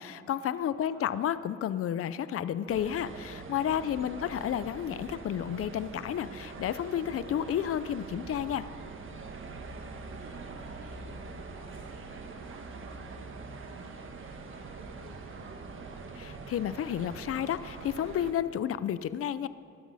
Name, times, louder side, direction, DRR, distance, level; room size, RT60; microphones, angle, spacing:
voice 1, 0.0-8.7 16.2-19.5, left 10 dB, 50° left, 15 dB, 0.6 m, -31 dB
voice 2, 0.7-1.3 3.8-4.4 9.5-15.8, right 2 dB, 60° right, -6 dB, 3.3 m, -55 dB
sound 1, 2.7-18.3, right 4 dB, 40° right, 1.4 m, -43 dB
18.5 x 12.5 x 4.1 m, 2.6 s
cardioid pair, 90°, 30 cm